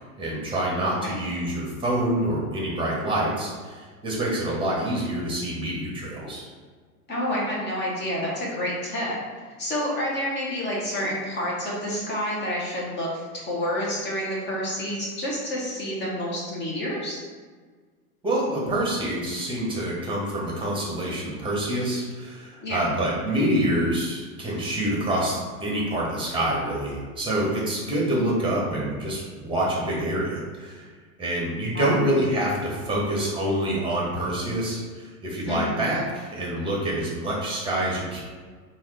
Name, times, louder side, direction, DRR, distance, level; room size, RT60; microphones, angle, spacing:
voice 1, 0.2-6.5 18.2-30.9 31.2-38.2, right 1 dB, 10° right, -4 dB, 1.2 m, -26 dB
voice 2, 0.8-1.2 7.1-9.2 9.6-17.2 22.6-22.9 31.7-32.0 35.5-35.8, equal, 25° left, -4 dB, 1.3 m, -29 dB
3.8 x 2.7 x 3.2 m, 1.5 s
hypercardioid pair, 100°, 45 cm